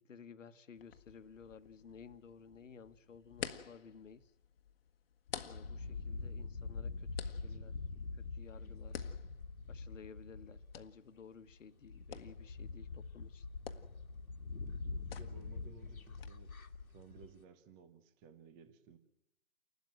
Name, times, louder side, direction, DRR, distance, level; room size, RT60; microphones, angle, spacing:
voice 1, 0.0-4.3 5.4-7.8 8.1-9.0 9.7-13.5, left 6 dB, 65° left, 10 dB, 1.5 m, -55 dB
sound 1, 0.8-16.3, left 8 dB, 45° left, 1.4 m, -52 dB
sound 2, 5.4-11.0 11.5-11.6 11.8-17.4, left 4 dB, 90° left, 2.0 m, -44 dB
voice 2, 5.7-6.1 15.0-16.5 16.9-19.0, right 5 dB, 10° right, 10 dB, 0.9 m, -58 dB
29.0 x 12.5 x 9.3 m, 0.92 s
hypercardioid pair, 150°, 41 cm